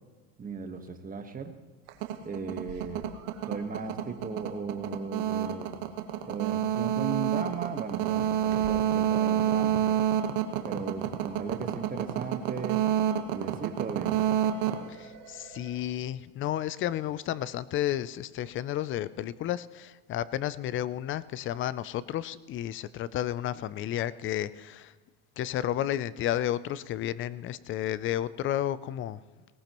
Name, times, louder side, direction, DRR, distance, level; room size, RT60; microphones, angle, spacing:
voice 1, 0.4-1.5 2.2-3.1 3.5-5.7 6.3-9.8 10.6-12.9 13.3-14.2, right 5 dB, 20° right, 6 dB, 1.3 m, -37 dB
sound 1, 1.9-15.7, right 10 dB, 65° right, 1.4 m, -28 dB
voice 2, 14.9-24.9 25.4-29.2, left 12 dB, 30° left, 17 dB, 0.4 m, -32 dB
19.5 x 18.0 x 3.0 m, 1.4 s
supercardioid pair, 120°, 44 cm